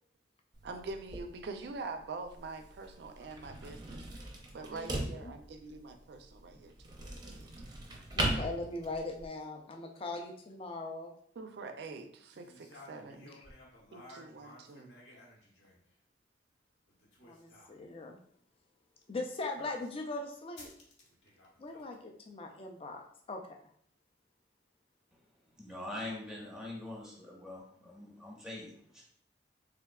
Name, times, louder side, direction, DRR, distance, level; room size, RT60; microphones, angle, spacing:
sound 1, 0.5-9.3, right 1 dB, 25° right, 0.6 m, -40 dB
voice 1, 0.6-7.5 11.4-13.3 13.9-15.0, right 3 dB, 65° right, 7 dB, 0.4 m, -45 dB
voice 2, 4.7-5.3 8.1-11.1 17.2-18.2 19.1-20.7 21.6-23.0 23.3-23.4, left 2 dB, 30° left, 2 dB, 0.5 m, -40 dB
sound 2, 12.3-15.9 16.9-17.7 19.5-20.0 20.6-22.0, left 1 dB, 65° left, 1.0 m, -55 dB
voice 3, 25.5-29.0, left 1 dB, 5° right, -3 dB, 1.0 m, -43 dB
3.5 x 3.4 x 2.3 m, 0.63 s
head